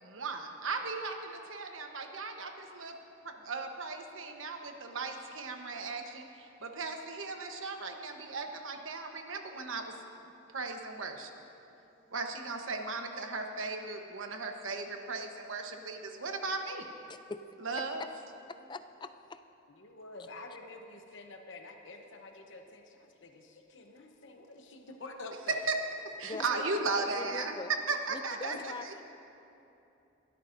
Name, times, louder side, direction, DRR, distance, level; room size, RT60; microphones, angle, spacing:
voice 1, 0.0-2.9 3.2-10.0 10.5-11.3 12.1-16.9 17.6-18.0 25.5-25.8 26.2-27.6 27.9-28.7, right 3 dB, 80° right, 4 dB, 1.1 m, -36 dB
voice 2, 17.1-17.4 18.0-18.1 18.5-19.4 22.7-22.8 26.2-27.7 28.1-29.0, left 3 dB, 20° left, 10 dB, 0.4 m, -43 dB
voice 3, 19.8-25.7 26.3-26.4 28.5-28.6, left 2 dB, 65° left, 3 dB, 0.9 m, -47 dB
21.0 x 13.0 x 2.6 m, 2.9 s
head